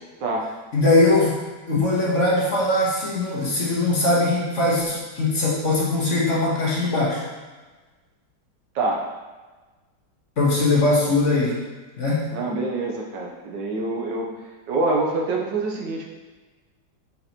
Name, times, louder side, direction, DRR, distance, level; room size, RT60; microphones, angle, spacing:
voice 1, 0.7-1.4 1.7-7.2 10.4-11.6 12.0-12.2, left 2 dB, 45° left, -5 dB, 1.4 m, -21 dB
voice 2, 12.3-14.3 14.7-16.1, right 2 dB, 70° right, 0 dB, 1.5 m, -25 dB
7.1 x 5.5 x 3.0 m, 1.3 s
omnidirectional pair, 2.1 m